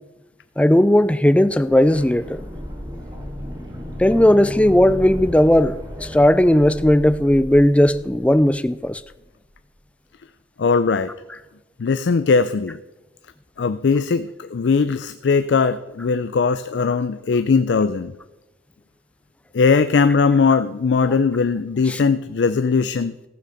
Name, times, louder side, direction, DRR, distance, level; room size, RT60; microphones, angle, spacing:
voice 1, 0.6-2.4 4.0-9.0 21.0-21.1 21.9-22.0, left 1 dB, 5° left, 0.3 m, -16 dB
sound 1, 1.4-9.3 9.5-9.6, equal, 20° right, 1.8 m, -34 dB
voice 2, 10.6-11.1 11.8-12.8 13.6-18.1 19.5-23.1, left 5 dB, 85° left, 0.4 m, -19 dB
14.5 x 6.7 x 6.4 m
head